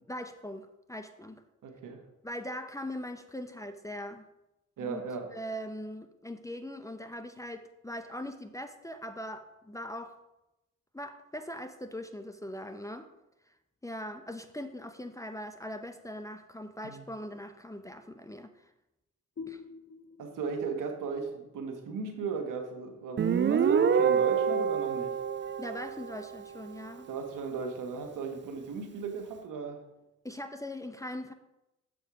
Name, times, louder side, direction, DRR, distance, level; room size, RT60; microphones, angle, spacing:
voice 1, 0.1-1.4 2.2-4.3 4.8-5.0 5.3-10.2 10.9-13.1 13.8-18.7 19.5-19.6 25.6-27.1 30.2-31.3, left 1 dB, 10° left, 8 dB, 0.6 m, -41 dB
voice 2, 1.6-2.0 4.8-5.3 16.8-17.0 20.2-25.1 27.1-29.8, right 5 dB, 70° right, 4 dB, 1.4 m, -36 dB
sound 1, 19.4-22.8, left 5 dB, 45° left, 1.2 m, -48 dB
Guitar, 23.2-26.6, right 7 dB, 35° right, 0.5 m, -27 dB
6.9 x 5.1 x 4.8 m, 0.93 s
supercardioid pair, 50°, 33 cm